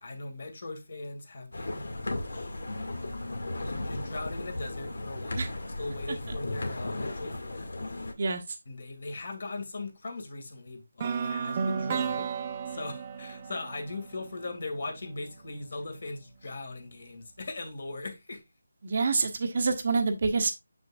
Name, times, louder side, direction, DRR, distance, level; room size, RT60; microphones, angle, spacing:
voice 1, 0.0-1.9 3.6-7.7 8.7-12.3 12.7-18.4, left 2 dB, 45° left, 2.0 m, -39 dB
sound 1, 1.5-8.1, left 2 dB, 70° left, 2.0 m, -35 dB
sound 2, 11.0-15.0, right 6 dB, 20° right, 0.6 m, -33 dB
voice 2, 18.8-20.5, right 4 dB, 35° right, 1.0 m, -27 dB
7.3 x 6.1 x 2.4 m
figure-of-eight pair, 175°, 0 cm